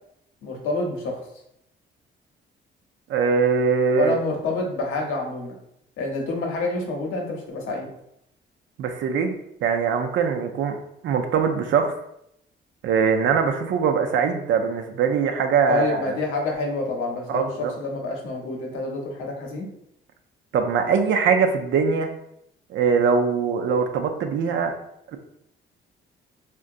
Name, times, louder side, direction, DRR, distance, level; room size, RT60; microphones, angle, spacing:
voice 1, 0.4-1.2 4.0-5.6 6.0-7.9 15.7-19.7, left 2 dB, 90° left, 0 dB, 0.8 m, -27 dB
voice 2, 3.1-4.2 8.8-10.8 11.0-11.9 12.8-16.1 17.3-17.7 20.5-22.1 22.7-24.7 25.1-25.2, right 6 dB, 70° right, 5 dB, 0.5 m, -22 dB
3.7 x 2.2 x 2.5 m, 0.76 s
cardioid pair, 90°, 20 cm